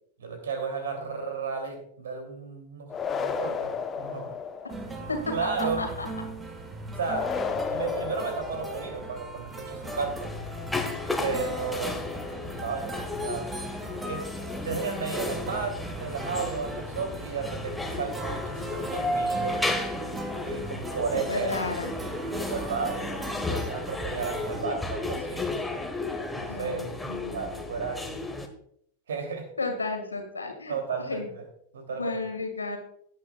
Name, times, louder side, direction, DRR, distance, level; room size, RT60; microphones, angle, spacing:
voice 1, 0.2-4.3 5.3-5.8 6.9-7.3 7.7-10.3 11.2-12.0 12.4-13.5 14.1-14.2 14.6-19.6 20.4-21.6 22.3-25.5 26.4-26.9 27.3-28.2 29.1-29.5 30.7-31.2 31.7-32.2, right 5 dB, 65° right, 5 dB, 2.7 m, -33 dB
sound 1, 2.9-5.0 7.1-9.1, left 6 dB, 20° left, 0.9 m, -32 dB
sound 2, 4.7-24.6, right 1 dB, 15° right, 1.5 m, -38 dB
sound 3, 9.8-28.5, left 2 dB, 5° left, 1.3 m, -34 dB
voice 2, 21.1-21.9 26.5-27.6 29.6-30.7 31.1-31.3 32.0-32.8, left 3 dB, 75° left, 5 dB, 2.0 m, -33 dB
17.5 x 9.0 x 2.3 m, 0.66 s
figure-of-eight pair, 90°, 0 cm